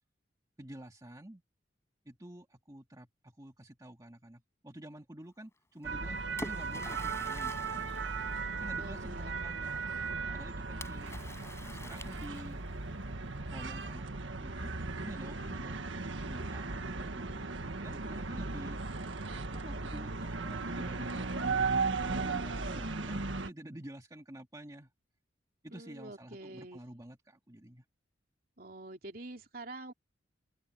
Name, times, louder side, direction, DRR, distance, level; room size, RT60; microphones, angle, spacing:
voice 1, 0.6-1.4 2.1-7.9 8.3-9.9 10.3-11.3 11.6-12.7 13.5-15.8 16.2-18.8 19.5-21.6 22.0-24.9 25.6-27.8, right 1 dB, 20° right, 1.9 m, -49 dB
Splash splatter, 5.8-9.0 10.8-12.7, left 2 dB, 15° left, 6.5 m, -47 dB
sound 1, 5.8-23.5, right 4 dB, 80° right, 1.7 m, -36 dB
voice 2, 8.8-9.4 25.7-26.8 28.6-29.9, right 2 dB, 50° right, 3.3 m, -46 dB
open air
head